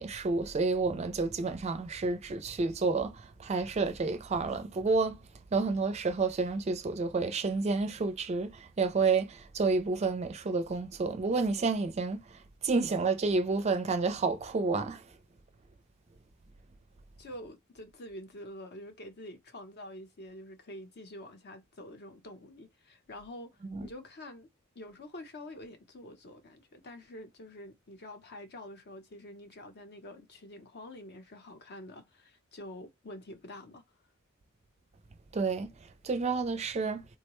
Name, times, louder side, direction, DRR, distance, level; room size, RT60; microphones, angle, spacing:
voice 1, 0.0-5.2 5.5-15.1 23.6-23.9 35.3-37.1, right 4 dB, 30° right, 0.4 m, -30 dB
voice 2, 17.2-24.5 24.8-33.8, left 1 dB, 50° left, 0.7 m, -47 dB
3.7 x 2.1 x 3.0 m
head